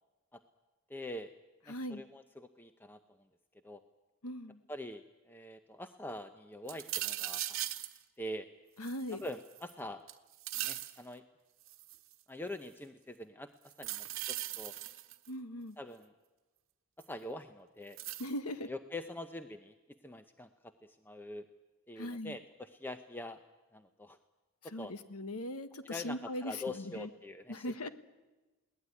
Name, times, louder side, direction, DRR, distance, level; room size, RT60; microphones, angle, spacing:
voice 1, 0.9-1.3 1.7-3.0 3.6-3.8 4.7-7.6 8.2-8.5 9.1-10.1 10.6-11.2 12.3-13.5 13.8-14.7 15.8-16.1 17.0-18.0 18.7-19.7 20.0-21.5 21.9-23.4 23.7-24.2 24.6-24.9 25.9-27.9, left 1 dB, 10° left, 8 dB, 0.7 m, -44 dB
voice 2, 1.7-2.0 4.2-4.6 8.8-9.2 15.3-15.8 18.2-18.7 22.0-22.4 24.7-27.1 27.5-27.9, left 1 dB, 90° left, 11 dB, 1.3 m, -40 dB
sound 1, 6.7-8.0 8.8-9.7 10.1-11.0 11.7-12.1 13.7-15.3 17.0-17.1 18.0-18.3, right 14 dB, 60° right, 1.2 m, -39 dB
21.5 x 18.0 x 9.7 m, 1.1 s
head